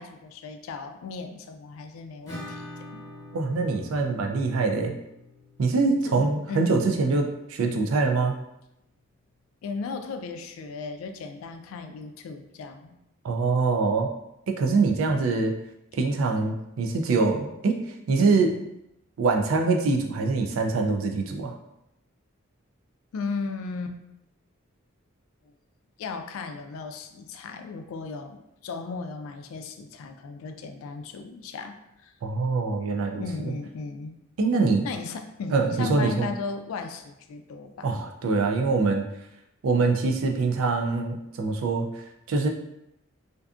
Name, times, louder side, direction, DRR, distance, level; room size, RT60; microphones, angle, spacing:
voice 1, 0.0-3.1 5.9-6.8 9.6-13.0 23.1-24.0 26.0-31.8 32.0-32.1 33.1-34.2 34.8-38.0, left 4 dB, 90° left, 8 dB, 0.3 m, -36 dB
Acoustic guitar / Strum, 2.3-7.7, left 1 dB, 15° left, 0.8 m, -45 dB
voice 2, 3.3-4.9 5.6-8.4 13.2-14.1 14.5-15.5 15.9-17.8 18.1-18.6 19.2-21.5 32.2-33.5 34.4-34.9 35.5-36.3 37.8-39.1 39.6-42.5, right 3 dB, 85° right, 3 dB, 0.4 m, -24 dB
2.5 x 2.4 x 2.4 m, 0.85 s
head